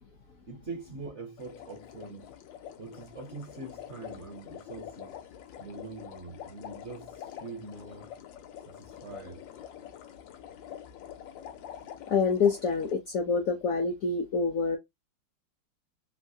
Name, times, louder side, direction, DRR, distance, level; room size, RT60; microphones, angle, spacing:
voice 1, 0.5-2.3 2.8-5.2 5.6-8.1 8.7-9.4, right 3 dB, 55° right, 0.8 m, -43 dB
sound 1, 1.4-12.9, left 10 dB, 90° left, 1.3 m, -46 dB
voice 2, 12.1-14.8, left 5 dB, 70° left, 0.8 m, -27 dB
3.2 x 2.5 x 2.7 m
omnidirectional pair, 2.0 m